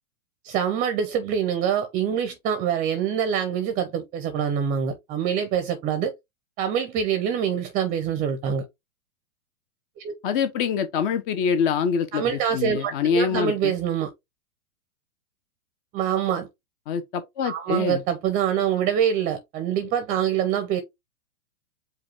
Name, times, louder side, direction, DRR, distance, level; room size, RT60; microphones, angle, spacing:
voice 1, 0.4-6.1 6.6-8.6 10.0-10.1 12.1-14.1 15.9-16.5 17.4-20.8, right 8 dB, 20° right, 0.6 m, -25 dB
voice 2, 10.2-12.2 12.5-13.7 16.9-18.0, left 6 dB, 40° left, 0.7 m, -25 dB
4.9 x 2.3 x 4.3 m
hypercardioid pair, 130°, 43 cm